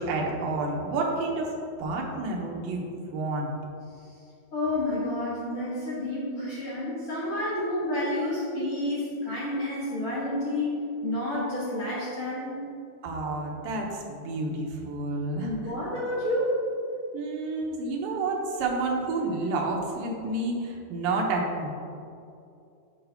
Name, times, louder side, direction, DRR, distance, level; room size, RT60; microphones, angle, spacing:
voice 1, 0.0-1.5 1.8-3.5 13.0-15.5 17.1-21.7, right 3 dB, 80° right, 0 dB, 2.6 m, -30 dB
voice 2, 4.5-12.6 15.4-16.5, left 1 dB, 55° left, -8 dB, 1.6 m, -30 dB
9.9 x 6.9 x 2.8 m, 2.5 s
omnidirectional pair, 4.2 m